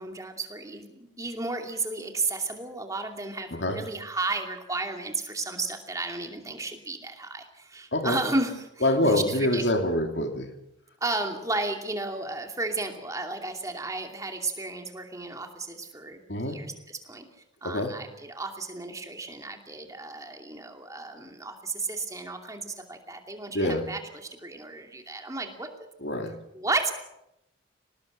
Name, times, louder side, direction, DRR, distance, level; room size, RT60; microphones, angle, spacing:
voice 1, 0.0-9.6 11.0-17.2 17.6-25.7 26.5-26.9, right 3 dB, 15° right, 3 dB, 2.6 m, -33 dB
voice 2, 3.5-3.8 7.9-8.2 8.8-10.5 16.3-16.6 17.6-17.9 23.5-23.8 26.0-26.3, left 1 dB, 60° left, 5 dB, 2.6 m, -25 dB
25.5 x 19.0 x 6.6 m, 0.83 s
head